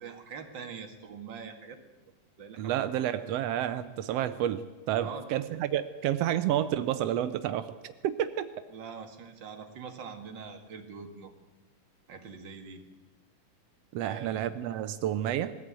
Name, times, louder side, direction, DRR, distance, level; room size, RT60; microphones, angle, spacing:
voice 1, 0.0-1.8 2.4-3.0 5.0-5.4 8.7-11.3 12.1-12.8 14.0-14.4, right 6 dB, 40° right, 4 dB, 2.1 m, -44 dB
voice 2, 2.6-7.8 8.0-8.5 13.9-15.5, right 11 dB, 90° right, 11 dB, 1.4 m, -30 dB
21.5 x 14.5 x 8.9 m, 1.2 s
omnidirectional pair, 3.9 m